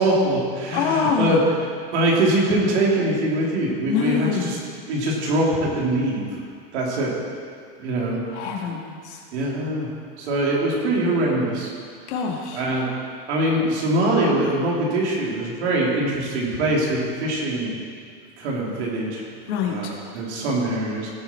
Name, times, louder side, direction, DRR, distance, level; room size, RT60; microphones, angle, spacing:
voice 1, 0.0-1.4 1.9-4.6 4.9-6.3 6.7-7.1 7.8-8.2 9.3-9.9 10.2-11.7 12.5-12.9 13.3-17.8 18.4-19.2 19.6-21.1, right 1 dB, 90° right, -3 dB, 3.2 m, -23 dB
voice 2, 0.7-1.5 3.9-4.5 8.3-9.2 12.1-12.6 19.5-19.9, left 6 dB, 90° left, 0 dB, 2.2 m, -25 dB
16.5 x 7.8 x 4.5 m, 2.2 s
supercardioid pair, 150°, 33 cm